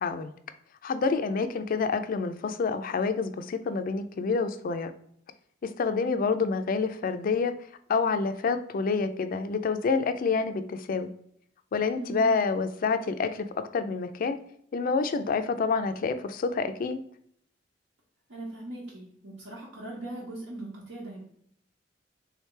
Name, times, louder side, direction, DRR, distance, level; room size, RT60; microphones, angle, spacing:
voice 1, 0.0-0.3 0.8-4.9 5.6-7.5 7.9-11.1 11.7-13.5 13.7-14.4 14.7-17.0, left 4 dB, 50° left, 10 dB, 0.4 m, -28 dB
voice 2, 5.8-6.3 12.0-12.3 18.3-21.2, right 2 dB, 75° right, -5 dB, 1.2 m, -40 dB
3.5 x 3.2 x 3.2 m, 0.67 s
head